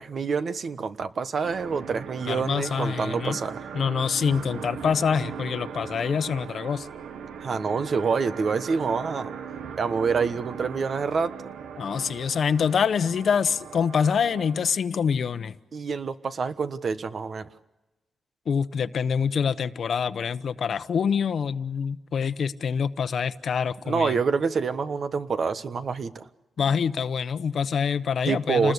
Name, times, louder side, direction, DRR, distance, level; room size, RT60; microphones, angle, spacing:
voice 1, 0.0-3.6 7.4-9.3 9.8-11.3 15.7-17.5 23.9-26.3 28.3-28.7, right 5 dB, 55° right, 1.2 m, -27 dB
sound 1, 1.4-14.8, right 7 dB, 90° right, 1.3 m, -39 dB
voice 2, 2.3-3.4 3.7-6.9 11.8-15.6 18.5-24.2 26.6-28.7, left 6 dB, 60° left, 0.9 m, -25 dB
29.0 x 20.5 x 8.3 m
cardioid pair, 110°, 0 cm